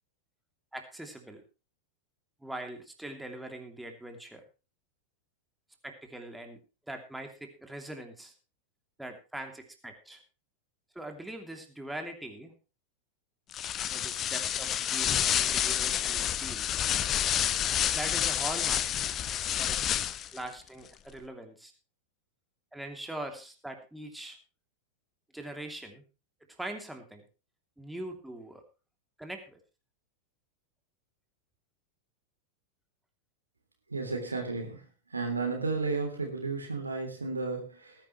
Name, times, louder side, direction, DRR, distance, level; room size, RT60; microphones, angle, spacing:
voice 1, 0.7-1.4 2.4-4.4 5.8-6.6 6.9-8.3 9.0-10.2 10.9-12.5 13.9-16.7 17.9-18.9 19.6-20.0 20.3-21.7 22.7-24.4 25.3-26.0 26.6-27.2 27.8-28.6 29.2-29.6, right 1 dB, 5° right, 4 dB, 2.9 m, -42 dB
sound 1, 13.5-20.4, left 10 dB, 30° left, 0.8 m, -29 dB
voice 2, 33.9-34.8 35.1-37.9, right 3 dB, 80° right, 3 dB, 3.3 m, -33 dB
19.0 x 10.5 x 3.2 m, 0.32 s
figure-of-eight pair, 90°, 0 cm